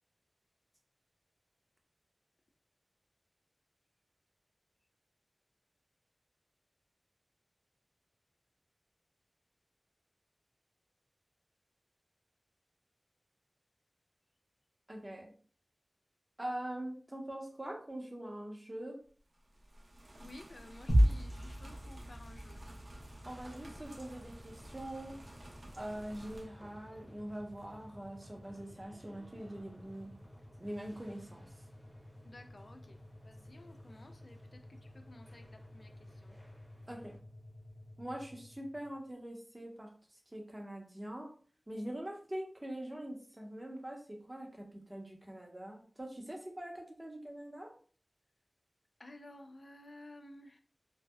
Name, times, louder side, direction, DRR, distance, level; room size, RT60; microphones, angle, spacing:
voice 1, 14.9-15.3 16.4-19.0 23.3-25.2 25.7-30.1 30.6-31.5 36.9-37.2 38.0-39.9 40.3-41.3 41.7-47.7, right 1 dB, 25° right, 0.7 m, -43 dB
sound 1, 19.2-26.5, right 1 dB, 80° right, 0.5 m, -54 dB
voice 2, 20.2-22.6 32.2-36.4 49.0-50.6, left 1 dB, 70° left, 0.3 m, -54 dB
sound 2, 20.9-39.1, equal, 85° left, 0.8 m, -39 dB
sound 3, 23.3-37.2, equal, 30° left, 0.9 m, -64 dB
2.6 x 2.0 x 2.3 m
wide cardioid pair, 50°, 0 cm